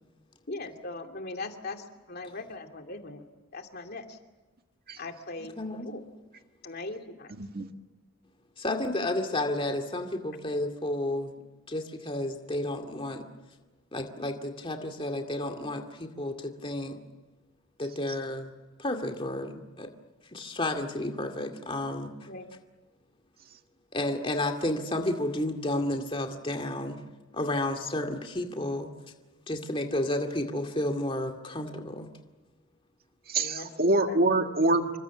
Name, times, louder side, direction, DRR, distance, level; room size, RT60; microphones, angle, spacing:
voice 1, 0.5-3.2 3.5-4.2 5.0-5.6 5.8-6.0 6.6-7.3 22.3-22.5 33.3-33.7 34.1-34.2, left 2 dB, 50° left, 5 dB, 2.6 m, -39 dB
voice 2, 5.6-5.9 8.6-11.3 11.7-13.3 13.9-17.0 17.8-18.5 18.8-19.9 20.3-22.1 23.9-27.0 27.3-28.9 29.5-32.1, left 1 dB, 25° left, 4 dB, 2.2 m, -31 dB
voice 3, 33.3-35.0, right 2 dB, 45° right, 5 dB, 1.8 m, -25 dB
28.5 x 24.5 x 7.2 m, 1.2 s
head